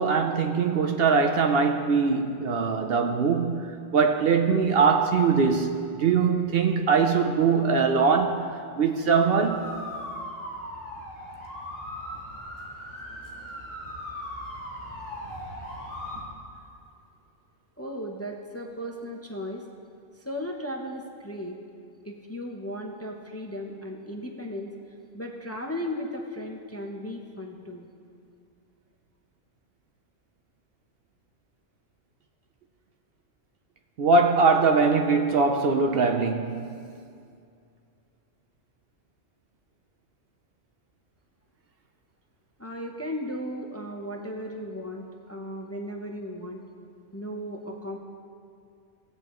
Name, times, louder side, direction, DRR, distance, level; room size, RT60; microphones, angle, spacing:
voice 1, 0.0-3.7 3.9-8.4 8.8-9.7 34.0-36.7, right 5 dB, 60° right, 0.7 m, -22 dB
sound 1, 9.3-16.2, equal, 90° right, 3.3 m, -38 dB
voice 2, 17.8-19.6 20.2-21.6 22.0-24.7 25.1-27.9 42.6-46.6 47.1-48.0, equal, 15° left, 0.6 m, -36 dB
18.0 x 8.1 x 3.0 m
omnidirectional pair, 1.2 m